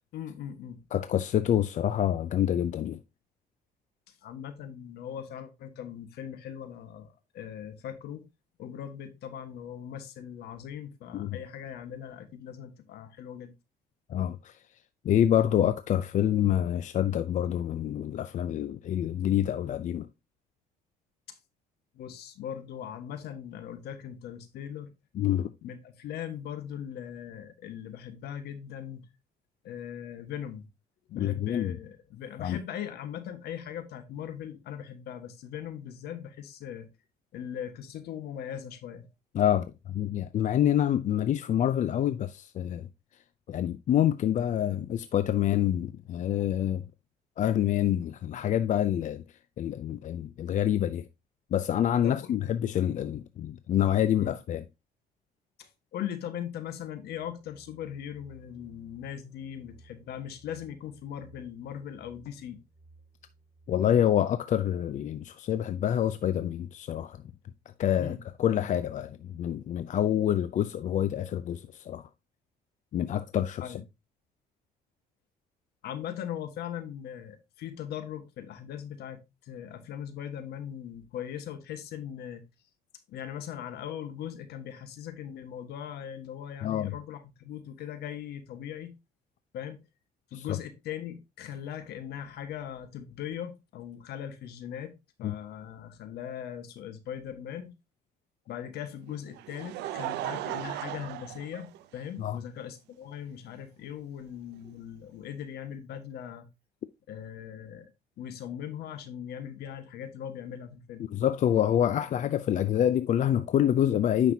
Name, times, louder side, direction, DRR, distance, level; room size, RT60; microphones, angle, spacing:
voice 1, 0.1-0.8 4.2-8.2 8.6-13.5 21.3-21.4 21.9-24.9 25.6-29.1 29.6-30.7 31.1-36.9 37.3-39.1 52.0-52.5 54.2-54.3 55.6-62.6 68.0-68.2 73.6-73.8 75.8-82.5 83.1-88.9 89.5-89.8 90.3-94.9 95.2-97.7 98.5-106.5 107.1-107.9 108.2-111.1, left 9 dB, 70° left, 1.5 m, -40 dB
voice 2, 0.9-3.0 11.1-11.4 14.1-14.6 15.0-20.1 25.1-25.5 31.1-31.8 32.4-32.6 39.3-42.9 43.5-46.8 47.4-49.2 49.6-51.1 51.5-54.6 63.7-67.2 67.8-72.1 72.9-73.8 86.6-87.0 90.3-90.6 95.2-95.3 102.2-102.4 111.0-114.3, left 10 dB, 45° left, 0.5 m, -27 dB
sound 1, 56.9-64.6, right 2 dB, ahead, 2.3 m, -58 dB
Laughter, 99.1-102.3 103.1-103.2 104.7-104.8, right 14 dB, 85° right, 0.7 m, -37 dB
9.2 x 6.0 x 2.8 m
cardioid pair, 110°, 17 cm